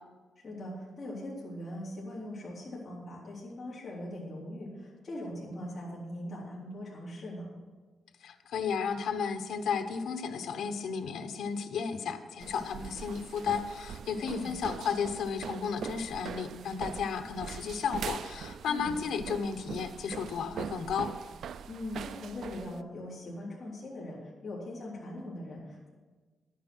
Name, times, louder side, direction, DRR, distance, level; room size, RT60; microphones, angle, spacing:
voice 1, 0.4-7.5 14.2-14.5 18.6-18.9 21.6-25.9, left 1 dB, 25° left, -6 dB, 3.7 m, -41 dB
voice 2, 8.2-21.1, left 6 dB, 85° left, 8 dB, 0.9 m, -33 dB
sound 1, 12.4-22.8, right 7 dB, 60° right, 0.3 m, -42 dB
11.0 x 9.4 x 6.2 m, 1.3 s
wide cardioid pair, 175°, 0 cm